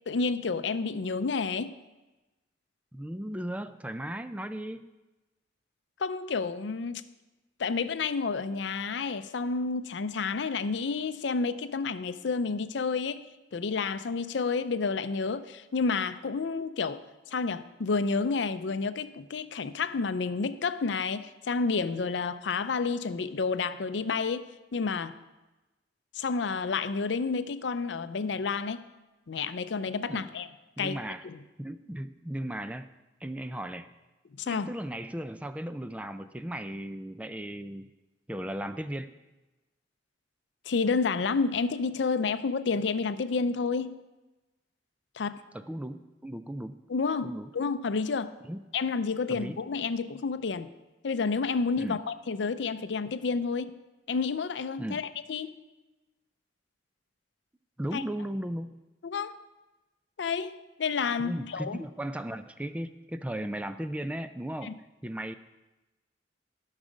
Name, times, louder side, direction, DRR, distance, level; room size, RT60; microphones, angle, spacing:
voice 1, 0.1-1.8 6.0-7.0 7.6-17.0 17.3-25.2 26.2-28.8 29.3-30.5 30.8-31.0 31.2-31.4 34.4-34.7 40.7-44.0 45.2-45.4 46.9-48.3 48.7-50.7 51.0-53.8 54.1-55.5 57.9-58.0 59.0-59.4 60.2-61.8 64.6-64.7, left 4 dB, 70° left, 12 dB, 0.5 m, -30 dB
voice 2, 2.9-4.9 30.1-30.3 30.8-31.3 31.6-32.9 33.2-33.9 34.5-37.9 38.3-39.1 45.5-46.8 47.2-47.5 48.4-48.6 49.3-49.6 51.8-52.0 54.8-55.0 57.8-58.8 61.1-65.3, right 1 dB, 10° right, 11 dB, 0.3 m, -36 dB
12.5 x 6.4 x 5.1 m, 1.1 s
head